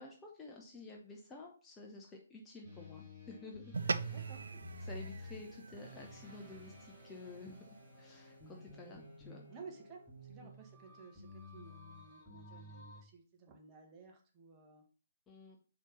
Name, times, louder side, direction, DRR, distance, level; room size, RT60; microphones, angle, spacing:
voice 1, 0.0-4.2 4.8-7.7 8.0-9.4 10.4-10.5 15.3-15.6, left 3 dB, 15° left, 0 dB, 0.9 m, -51 dB
sound 1, 2.6-13.0, left 2 dB, 5° right, 2.6 m, -53 dB
sound 2, 3.7-8.4, right 4 dB, 65° right, 0.4 m, -42 dB
voice 2, 4.1-4.5 9.5-14.8, right 5 dB, 20° right, 1 dB, 1.4 m, -55 dB
4.5 x 4.3 x 5.1 m, 0.38 s
figure-of-eight pair, 130°, 0 cm